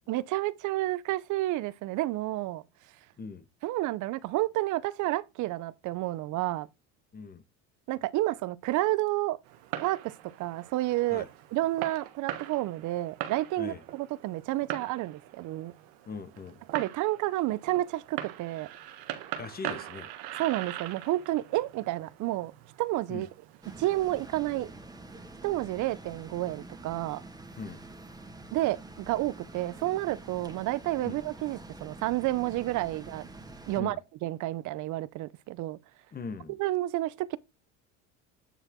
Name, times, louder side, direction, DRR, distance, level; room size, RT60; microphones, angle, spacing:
voice 1, 0.1-2.6 3.6-6.7 7.9-9.4 9.8-15.7 16.7-18.7 20.4-22.5 22.8-23.3 23.8-24.7 25.4-27.2 28.5-33.3 33.7-34.0 34.2-35.8 36.6-37.4, right 16 dB, 60° right, 0.7 m, -30 dB
voice 2, 7.1-7.4 11.1-11.3 13.6-13.8 16.1-16.6 19.4-20.1 23.1-23.2 27.6-27.8 31.0-31.2 33.7-34.0 36.1-36.6, left 4 dB, 25° left, 1.4 m, -40 dB
Fireworks, 9.4-24.3, right 12 dB, 75° right, 1.4 m, -42 dB
sound 1, 23.6-33.8, right 2 dB, 10° right, 2.0 m, -47 dB
9.1 x 4.6 x 3.8 m
supercardioid pair, 105°, 34 cm